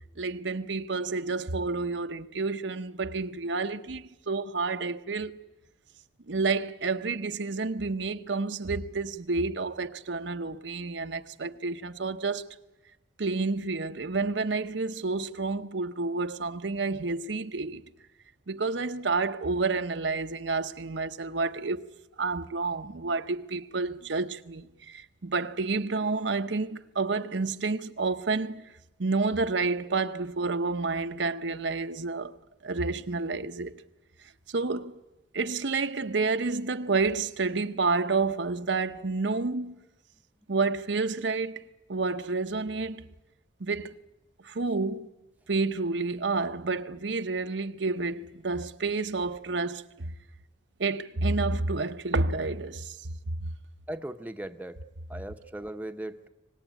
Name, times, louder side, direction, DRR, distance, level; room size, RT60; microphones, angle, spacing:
voice 1, 0.2-5.4 6.3-12.4 13.2-17.8 18.5-21.9 22.2-28.6 29.0-32.4 32.6-33.7 34.5-34.9 35.3-39.8 40.5-43.1 43.6-43.9 44.4-45.1 45.5-50.1 50.8-53.0 53.4-53.5, right 3 dB, 85° right, 0.9 m, -29 dB
voice 2, 53.9-54.8 55.1-56.3, right 1 dB, 10° right, 0.8 m, -38 dB
25.0 x 19.0 x 9.2 m
head